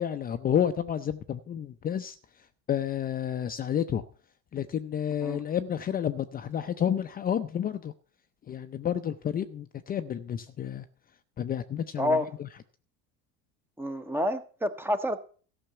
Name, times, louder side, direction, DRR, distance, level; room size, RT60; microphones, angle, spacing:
voice 1, 0.0-2.2 2.7-4.0 4.5-7.9 8.5-10.8 11.4-12.5, left 9 dB, 30° left, 0.6 m, -30 dB
voice 2, 12.0-12.3 13.8-15.2, left 1 dB, 5° right, 0.9 m, -28 dB
13.5 x 5.9 x 6.7 m
supercardioid pair, 120°, 31 cm